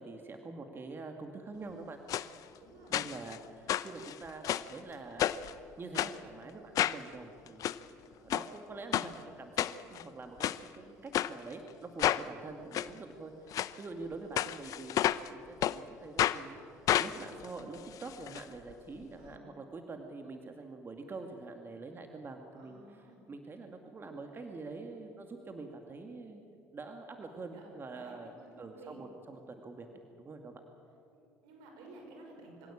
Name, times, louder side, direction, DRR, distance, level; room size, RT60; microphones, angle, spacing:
voice 1, 0.0-2.0 2.9-5.5 5.8-7.6 8.0-9.6 9.9-14.9 15.3-26.4 26.7-29.9 30.2-30.6, right 3 dB, 35° right, 5 dB, 2.2 m, -45 dB
sound 1, 2.1-2.3 2.9-3.4 3.7-4.7 5.2-5.5 5.9-6.1 6.7-7.0 7.5-7.8 8.3-8.5 8.9-9.1 9.6-10.0 10.4-10.6 11.1-11.3 12.0-12.2 12.7-12.9 13.5-13.7 14.4-15.3 15.6-15.8 16.2-16.4 16.9-18.4 18.7-18.8 19.0-19.1, left 12 dB, 60° left, 0.7 m, -30 dB
voice 2, 2.5-3.0 19.2-19.5 22.5-23.2 27.5-29.0 31.1-32.7, right 2 dB, 80° right, 1 dB, 6.0 m, -54 dB
25.0 x 16.5 x 8.7 m, 2.7 s
supercardioid pair, 75°, 7 cm